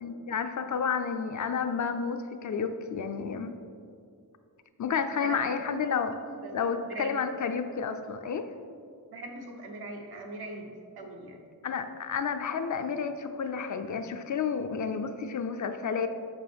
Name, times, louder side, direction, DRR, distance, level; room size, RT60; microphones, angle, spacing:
voice 1, 0.0-3.5 4.8-6.2 6.5-8.4 11.6-16.1, left 6 dB, 50° left, 8 dB, 0.4 m, -31 dB
voice 2, 6.4-7.1 9.1-11.4, right 2 dB, 80° right, 2 dB, 1.0 m, -41 dB
6.2 x 5.9 x 3.5 m, 2.3 s
wide cardioid pair, 120°, 38 cm